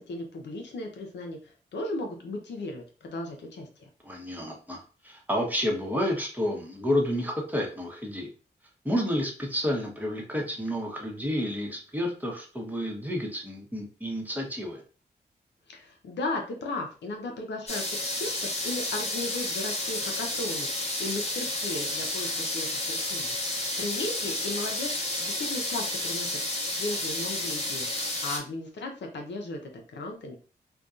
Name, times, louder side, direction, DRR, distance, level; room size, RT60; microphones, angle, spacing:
voice 1, 0.0-1.4 1.7-3.9 15.7-23.4 23.8-26.4 26.7-30.4, left 2 dB, 75° left, 3 dB, 0.6 m, -36 dB
voice 2, 4.0-8.3 8.8-14.8, equal, 10° right, -1 dB, 0.9 m, -30 dB
sound 1, 17.7-28.4, left 1 dB, 35° left, 0.8 m, -31 dB
2.6 x 2.2 x 2.3 m, 0.37 s
cardioid pair, 50°, 18 cm